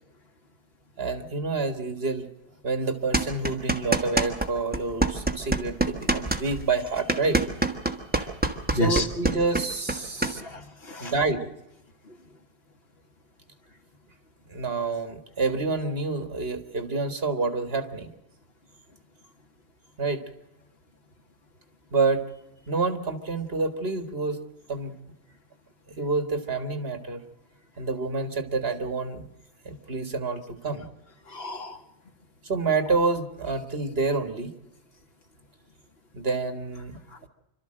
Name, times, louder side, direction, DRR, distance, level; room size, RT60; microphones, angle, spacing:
voice 1, 1.0-2.3 2.6-7.4 8.2-8.3 8.7-10.4 11.0-11.5 14.5-18.1 20.0-20.2 21.9-22.3 22.7-24.4 24.7-24.9 26.0-27.2 27.8-29.3 29.7-30.9 32.4-34.5 36.1-37.0, right 3 dB, 70° right, 8 dB, 2.0 m, -28 dB
sound 1, 3.1-4.5 4.7-10.3, right 2 dB, 10° right, 1.5 m, -25 dB
voice 2, 8.7-9.1 10.2-11.1 12.1-12.2 31.3-31.8 37.1-37.3, left 2 dB, 70° left, 4 dB, 2.1 m, -31 dB
26.5 x 13.0 x 7.7 m, 0.92 s
omnidirectional pair, 1.1 m